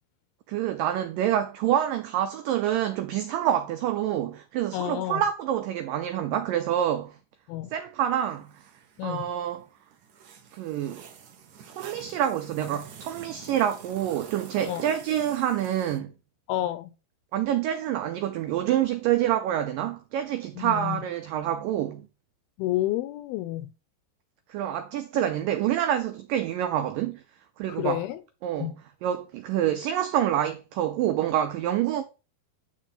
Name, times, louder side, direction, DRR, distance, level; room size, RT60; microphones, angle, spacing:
voice 1, 0.5-7.2 7.7-8.5 9.0-9.7 10.5-11.0 11.8-16.1 17.3-22.0 24.5-27.2 27.6-28.1 28.4-32.0, right 11 dB, 85° right, 1.9 m, -27 dB
voice 2, 4.7-5.2 7.5-7.7 9.0-9.3 14.7-14.8 16.5-16.9 20.6-21.0 22.6-23.7 27.7-28.2 28.6-28.7, left 14 dB, 80° left, 2.3 m, -29 dB
sound 1, 8.0-16.0, right 7 dB, 60° right, 2.0 m, -47 dB
9.8 x 3.7 x 5.7 m
omnidirectional pair, 4.7 m